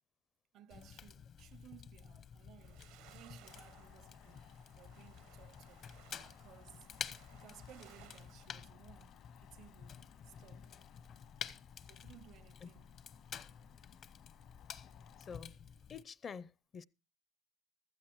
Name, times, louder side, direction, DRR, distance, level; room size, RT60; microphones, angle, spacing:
voice 1, 0.5-5.9 6.3-6.9 7.3-10.9 11.8-12.9, right 11 dB, 65° right, 0.7 m, -60 dB
Fire, 0.7-16.0, left 7 dB, 55° left, 0.9 m, -51 dB
sound 1, 2.6-8.7, right 12 dB, 85° right, 1.0 m, -63 dB
sound 2, 3.4-15.4, left 10 dB, 75° left, 2.0 m, -64 dB
voice 2, 15.2-15.5 15.9-16.8, left 6 dB, 40° left, 0.6 m, -47 dB
15.5 x 13.0 x 3.0 m
supercardioid pair, 90°, 0 cm